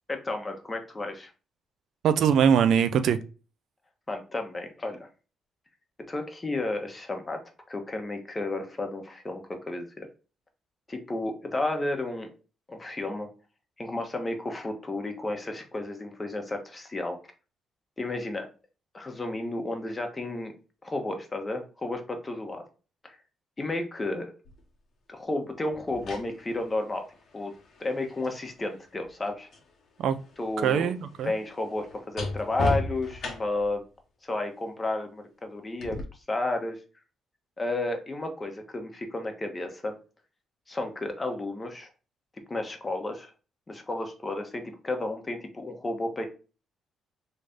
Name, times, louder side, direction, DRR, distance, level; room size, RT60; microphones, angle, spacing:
voice 1, 0.1-1.3 4.1-5.1 6.1-7.4 7.7-10.1 10.9-12.3 12.7-13.3 13.8-17.2 18.0-18.5 18.9-20.5 20.8-22.6 23.0-23.2 23.6-24.3 25.1-27.0 27.3-27.5 27.8-29.5 30.4-30.9 31.2-33.8 34.2-36.0 36.3-36.8 37.6-40.0 40.7-41.9 42.5-43.3 43.7-46.2, left 2 dB, 25° left, 1.0 m, -32 dB
voice 2, 2.0-3.2 30.0-30.2 30.6-31.3, right 8 dB, 70° right, 0.4 m, -22 dB
sound 1, 24.4-24.6 25.7-29.7 30.0-33.8 35.8-36.0, left 2 dB, 60° left, 1.1 m, -36 dB
3.2 x 2.6 x 3.5 m
cardioid pair, 90°, 0 cm